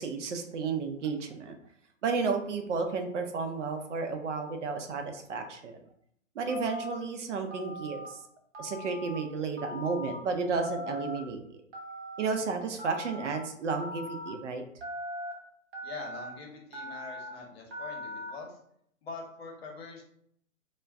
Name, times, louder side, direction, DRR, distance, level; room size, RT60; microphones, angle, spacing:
voice 1, 0.0-1.5 2.0-5.8 6.4-8.2 8.6-11.4 12.2-14.6, right 4 dB, 65° right, 5 dB, 0.6 m, -32 dB
Telephone, 6.5-6.9 7.5-8.1 8.5-9.2 9.6-10.1 10.6-11.2 11.7-12.3 12.8-13.3 13.8-14.3 14.8-15.3 15.7-16.3 16.7-17.3 17.7-18.3, equal, 40° right, 0.9 m, -40 dB
voice 2, 15.8-18.6 19.0-20.0, left 4 dB, 50° left, 0 dB, 0.9 m, -43 dB
2.3 x 2.2 x 3.4 m, 0.69 s
hypercardioid pair, 130°, 39 cm